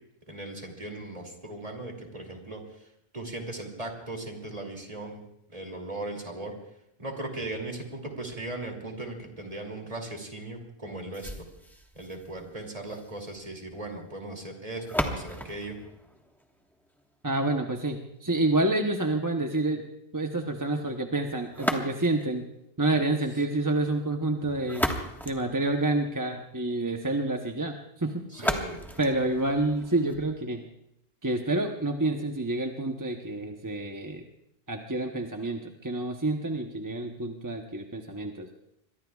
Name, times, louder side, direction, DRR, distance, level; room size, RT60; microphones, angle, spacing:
voice 1, 0.3-2.6 3.1-5.2 5.5-6.5 7.0-11.5 11.9-15.8 28.3-28.8, right 2 dB, 35° right, 2 dB, 2.9 m, -38 dB
sound 1, 11.1-17.1 21.5-22.4 24.4-26.3 28.3-30.3, equal, ahead, 1.4 m, -35 dB
voice 2, 17.2-19.9 20.1-22.5 22.8-24.9 25.2-28.6 29.0-30.6 31.2-34.2 34.7-38.5, right 2 dB, 20° right, 3 dB, 0.9 m, -28 dB
26.0 x 22.5 x 2.4 m, 0.80 s
omnidirectional pair, 1.1 m